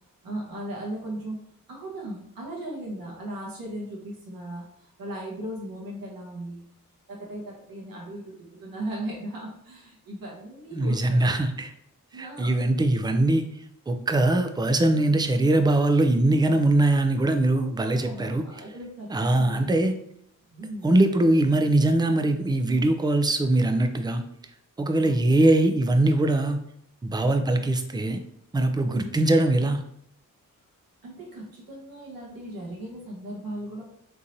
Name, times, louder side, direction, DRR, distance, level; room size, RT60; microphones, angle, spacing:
voice 1, 0.2-1.4 1.7-6.6 7.1-11.2 12.1-12.6 17.5-19.7 20.5-21.0 25.0-25.3 28.9-29.3 31.0-33.8, right 1 dB, 90° right, -2 dB, 1.2 m, -37 dB
voice 2, 10.7-11.7 12.1-13.5 13.9-18.4 19.1-20.0 20.8-24.2 24.8-26.6 27.0-28.2 28.5-29.8, right 2 dB, 15° right, 7 dB, 0.4 m, -22 dB
3.8 x 2.9 x 2.6 m, 0.71 s
cardioid pair, 65°, 34 cm